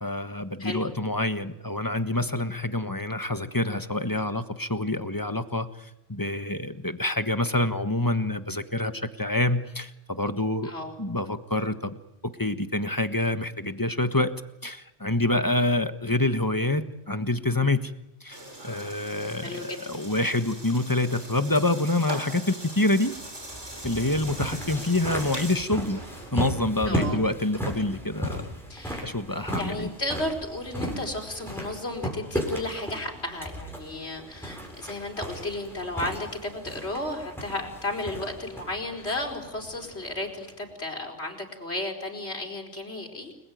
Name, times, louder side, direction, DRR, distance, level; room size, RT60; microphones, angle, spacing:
voice 1, 0.0-10.7 11.0-12.0 12.2-14.3 14.6-17.9 18.2-18.4 18.6-23.1 23.8-26.0 26.3-28.5 29.0-29.9, left 2 dB, 20° left, 10 dB, 1.4 m, -27 dB
voice 2, 0.6-0.9 10.6-10.9 19.4-19.8 26.8-27.2 28.7-29.1 29.6-43.4, left 1 dB, 65° left, 2 dB, 5.1 m, -33 dB
sound 1, 18.3-26.3, right 1 dB, 80° right, 6.9 m, -41 dB
sound 2, 23.0-40.7, equal, ahead, 7.7 m, -36 dB
30.0 x 21.0 x 9.4 m, 0.86 s
omnidirectional pair, 1.2 m